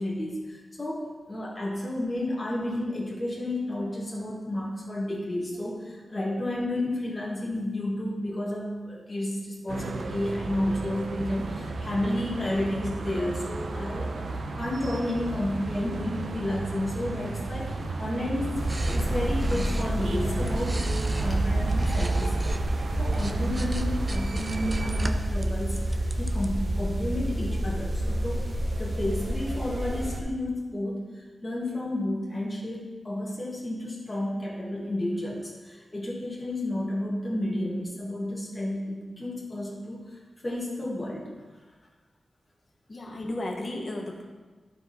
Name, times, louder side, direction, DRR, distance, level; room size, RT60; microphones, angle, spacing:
voice 1, 0.0-18.5 18.8-28.4 28.8-41.3, left 1 dB, 25° left, -5 dB, 1.7 m, -31 dB
sound 1, 9.7-25.1, right 3 dB, 75° right, 0.6 m, -33 dB
sound 2, 18.5-30.2, right 1 dB, 45° right, 0.9 m, -29 dB
sound 3, 18.7-22.6 23.0-26.5, right 2 dB, 25° right, 0.5 m, -42 dB
voice 2, 42.9-44.2, left 1 dB, 40° left, 0 dB, 1.1 m, -34 dB
12.0 x 4.7 x 4.1 m, 1.3 s
wide cardioid pair, 120°, 0 cm